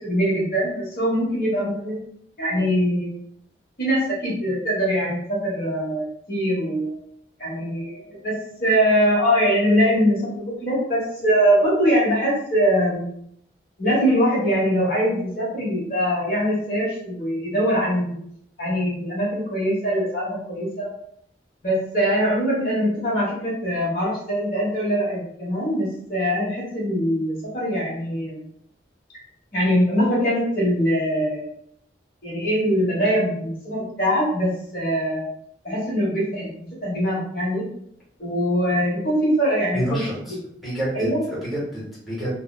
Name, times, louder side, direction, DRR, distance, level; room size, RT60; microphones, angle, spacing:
voice 1, 0.0-2.0 2.4-3.1 3.8-6.9 7.4-8.3 8.6-13.1 13.8-18.2 18.6-20.9 21.6-28.4 29.5-31.5 32.2-35.2 35.6-37.6 38.2-40.0 40.9-41.2, equal, 55° left, -5 dB, 1.2 m, -22 dB
voice 2, 39.7-40.4 40.6-42.3, right 1 dB, ahead, -9 dB, 1.0 m, -28 dB
3.2 x 2.1 x 2.3 m, 0.70 s
head